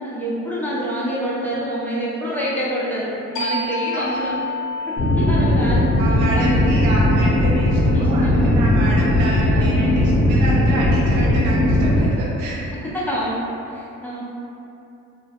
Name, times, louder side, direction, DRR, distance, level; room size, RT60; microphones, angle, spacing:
voice 1, 0.0-4.3 4.8-6.6 7.9-8.6 9.4-10.2 12.9-13.4 13.7-14.2, equal, 5° left, -9 dB, 0.5 m, -27 dB
sound 1, 3.4-8.7, left 2 dB, 85° left, 0.6 m, -30 dB
voice 2, 3.9-4.3 6.0-12.7, right 2 dB, 85° right, -4 dB, 0.6 m, -29 dB
sound 2, 5.0-12.0, left 1 dB, 50° left, 0.7 m, -17 dB
2.2 x 2.0 x 2.8 m, 2.7 s
cardioid pair, 90°, 30 cm